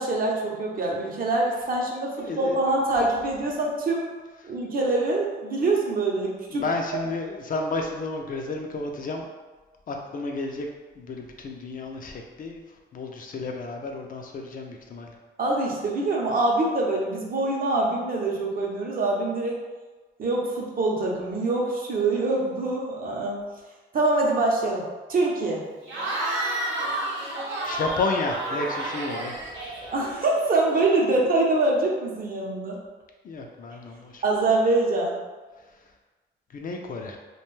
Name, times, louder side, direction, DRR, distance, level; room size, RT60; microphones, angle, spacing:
voice 1, 0.0-4.1 4.4-6.6 6.9-7.0 15.4-19.6 20.2-23.4 23.9-24.8 25.1-25.6 29.9-32.8 34.2-35.1, right 2 dB, 50° right, -2 dB, 0.6 m, -24 dB
voice 2, 2.2-2.6 6.5-9.3 9.9-10.7 11.0-12.6 12.9-15.1 27.6-29.8 33.2-34.2 36.5-37.2, left 3 dB, 45° left, 2 dB, 0.4 m, -32 dB
Cheering / Crowd, 25.8-30.5, right 1 dB, 90° right, 0.7 m, -30 dB
2.5 x 2.2 x 3.1 m, 1.3 s
cardioid pair, 90°, 19 cm